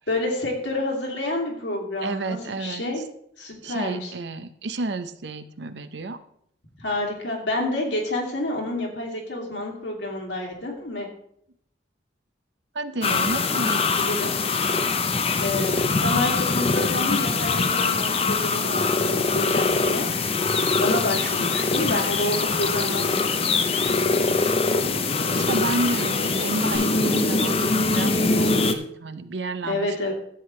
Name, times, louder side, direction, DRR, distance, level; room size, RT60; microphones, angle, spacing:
voice 1, 0.1-3.0 3.4-4.1 6.8-11.1 14.0-14.3 15.4-20.1 20.8-23.5 29.6-30.1, left 1 dB, 75° left, -1 dB, 2.6 m, -28 dB
voice 2, 2.0-2.8 3.4-6.2 12.7-14.3 25.3-30.0, right 2 dB, 70° right, 12 dB, 0.7 m, -31 dB
sound 1, 13.0-28.7, left 4 dB, 35° left, 0.6 m, -23 dB
Human voice / Acoustic guitar / Percussion, 18.8-26.7, equal, 15° right, 4.7 m, -43 dB
13.5 x 7.8 x 3.2 m, 0.69 s
head